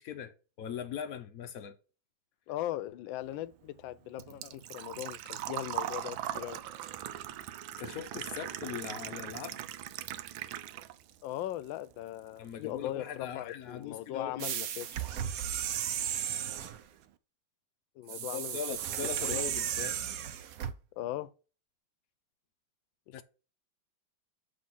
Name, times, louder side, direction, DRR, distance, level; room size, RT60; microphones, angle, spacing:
voice 1, 0.0-1.8 7.8-9.8 12.4-14.5 18.1-20.0 23.1-23.2, left 8 dB, 65° left, 0.9 m, -40 dB
voice 2, 2.5-6.6 11.2-14.9 18.0-18.6 19.3-19.4 21.0-21.3 23.1-23.2, left 14 dB, 80° left, 1.3 m, -39 dB
Engine / Trickle dribble / Fill (with liquid), 3.2-11.2 11.5-12.5 12.8-12.9 14.8-14.9 15.1-15.4 15.8-15.9 16.1-16.2, right 12 dB, 85° right, 1.4 m, -40 dB
sound 1, 14.4-16.8 18.1-20.7, right 10 dB, 65° right, 0.9 m, -34 dB
7.9 x 3.4 x 5.4 m
omnidirectional pair, 2.1 m